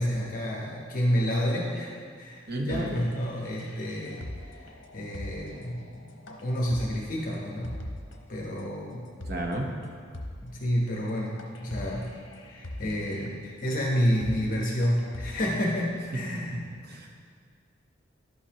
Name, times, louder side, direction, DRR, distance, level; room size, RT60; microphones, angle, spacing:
voice 1, 0.0-4.6 4.9-6.1 6.4-7.8 8.3-9.0 10.4-11.3 11.6-12.2 12.5-16.6, equal, 45° left, -3 dB, 1.0 m, -29 dB
voice 2, 2.5-3.0 9.3-9.7 16.9-17.1, right 1 dB, 50° right, 1 dB, 0.9 m, -31 dB
sound 1, 2.7-8.2 8.6-8.7 9.0-9.5 9.8-9.9 10.1-10.6 11.1-11.2 11.4-13.3 13.7-13.8 14.1-14.5 14.8-15.6, left 1 dB, 70° left, 0.9 m, -42 dB
11.5 x 5.5 x 2.9 m, 2.1 s
head